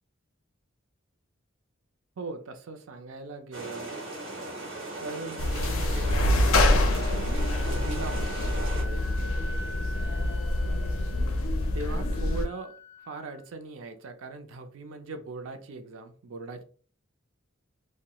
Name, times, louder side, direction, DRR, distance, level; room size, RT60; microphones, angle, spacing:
voice 1, 2.2-4.0 5.0-7.0 7.4-9.3 11.7-12.7 13.0-16.6, right 3 dB, 85° right, 6 dB, 0.5 m, -40 dB
sound 1, 3.5-8.8, right 2 dB, 70° right, 1.0 m, -38 dB
sound 2, 5.4-12.5, left 1 dB, 85° left, 0.4 m, -26 dB
Wind instrument woodwind instrument, 6.0-13.4, left 2 dB, 35° right, 0.5 m, -46 dB
2.2 x 2.1 x 2.8 m, 0.41 s
head